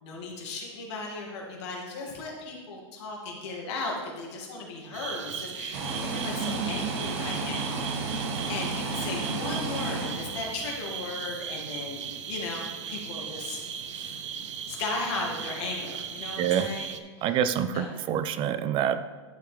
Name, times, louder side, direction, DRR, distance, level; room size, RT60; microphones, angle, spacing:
voice 1, 0.0-7.9 8.5-13.6 13.9-14.2 14.7-16.9 17.7-17.9, left 3 dB, 65° left, -1 dB, 2.3 m, -36 dB
sound 1, 4.9-17.0, right 8 dB, 85° right, 0.6 m, -37 dB
sound 2, 5.7-10.9, right 3 dB, 55° right, 1.6 m, -32 dB
voice 2, 6.4-6.9 16.4-16.7 17.2-19.0, right 9 dB, 35° right, 12 dB, 0.4 m, -27 dB
11.5 x 4.7 x 3.4 m, 1.4 s
hypercardioid pair, 120°, 15 cm